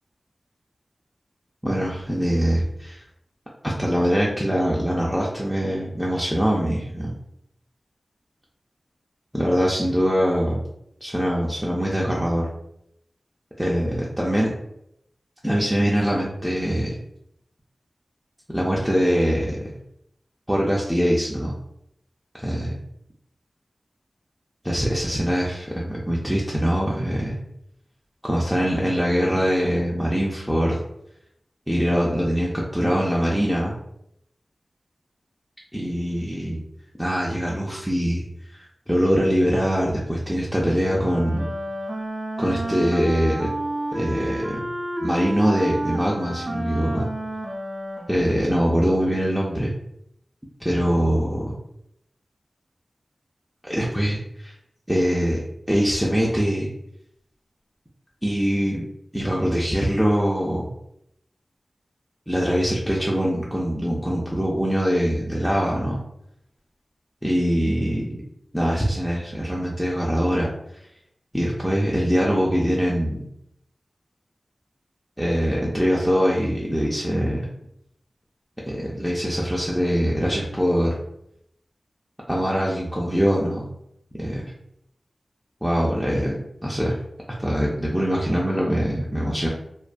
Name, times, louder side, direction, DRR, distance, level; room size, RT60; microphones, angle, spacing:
voice 1, 1.6-3.0 3.6-7.1 9.3-10.6 11.0-12.4 13.6-14.5 15.4-17.0 18.5-19.7 20.5-21.5 22.3-22.7 24.6-27.4 28.2-30.8 31.7-33.7 35.7-36.6 37.0-38.2 38.5-41.5 42.4-43.5 43.9-44.7 45.0-47.1 48.1-49.7 50.6-51.6 53.6-54.5 54.9-55.4 55.7-56.7 58.2-58.8 59.1-60.7 62.3-66.0 67.2-68.1 68.5-70.8 71.3-73.2 75.2-77.5 78.6-81.0 82.3-83.7 84.2-84.5 85.6-86.3 86.6-87.0 87.4-89.5, equal, 5° right, -4 dB, 0.4 m, -23 dB
Wind instrument woodwind instrument, 40.8-49.0, right 1 dB, 60° right, 0.5 m, -31 dB
2.3 x 2.2 x 2.4 m, 0.78 s
wide cardioid pair, 65°, 0 cm